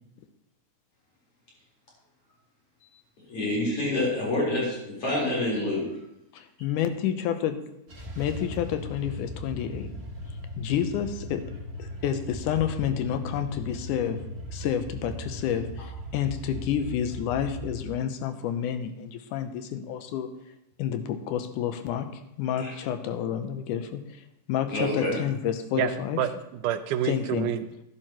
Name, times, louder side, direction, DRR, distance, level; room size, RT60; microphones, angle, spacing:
voice 1, 3.3-5.8 22.6-22.7 24.7-25.2, left 1 dB, 45° left, -5 dB, 4.9 m, -27 dB
voice 2, 6.6-7.6 8.2-9.9 10.6-11.4 11.8-14.2 14.5-20.3 20.8-22.1 22.4-24.2 24.5-26.2 27.0-27.5, left 9 dB, 80° left, 9 dB, 2.2 m, -29 dB
sound 1, 7.9-17.9, equal, 40° right, 0.9 m, -38 dB
voice 3, 25.8-27.8, right 9 dB, 80° right, 10 dB, 2.1 m, -29 dB
12.0 x 11.5 x 3.0 m, 0.84 s
omnidirectional pair, 3.7 m